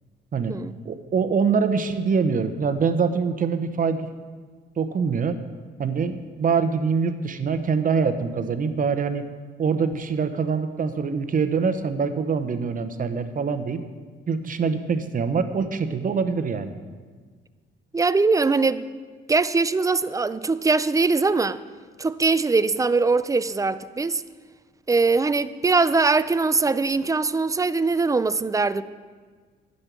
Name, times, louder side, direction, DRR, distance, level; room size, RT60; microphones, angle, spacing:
voice 1, 0.8-4.1 4.8-5.4 5.8-9.2 9.6-13.8 14.3-16.7, right 5 dB, 45° right, 0.9 m, -24 dB
voice 2, 17.9-18.8 19.3-21.6 22.0-24.2 24.9-28.8, right 3 dB, 15° right, 0.4 m, -21 dB
12.0 x 5.3 x 8.2 m
cardioid pair, 90°, 20 cm